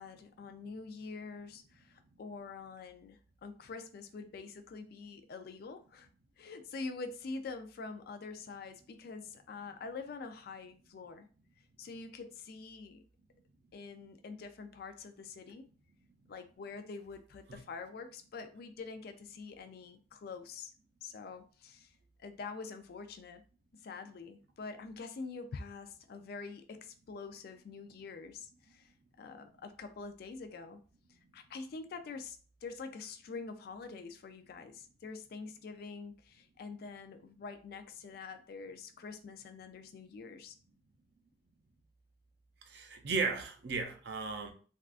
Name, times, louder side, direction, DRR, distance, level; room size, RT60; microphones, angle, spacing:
voice 1, 0.0-6.1 6.4-11.3 11.8-13.0 13.7-15.7 16.3-20.7 21.0-21.9 22.2-23.4 23.8-28.9 29.2-30.8 31.1-40.6, left 4 dB, 50° left, 0.3 m, -46 dB
voice 2, 42.7-44.5, right 4 dB, 60° right, 0.5 m, -35 dB
3.6 x 2.3 x 2.4 m
head